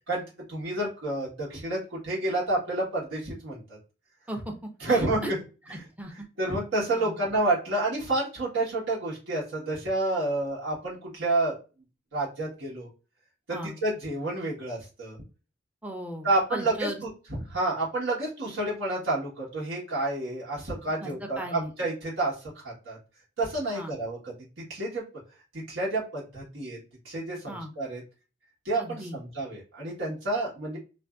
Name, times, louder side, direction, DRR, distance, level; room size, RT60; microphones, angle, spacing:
voice 1, 0.5-3.8 4.8-5.4 6.4-11.5 12.1-12.9 13.5-15.2 16.2-16.9 17.3-23.0 23.4-24.3 24.7-25.0 25.5-26.8 27.0-28.0 28.6-30.8, right 2 dB, 85° right, -6 dB, 1.2 m, -29 dB
voice 2, 4.3-5.3 5.7-6.3 6.9-7.2 13.5-13.8 15.8-17.0 21.0-21.1 21.4-21.7 23.7-23.9 27.5-27.7 28.8-29.2, right 1 dB, 10° right, 3 dB, 0.5 m, -37 dB
2.5 x 2.5 x 2.3 m, 0.33 s
head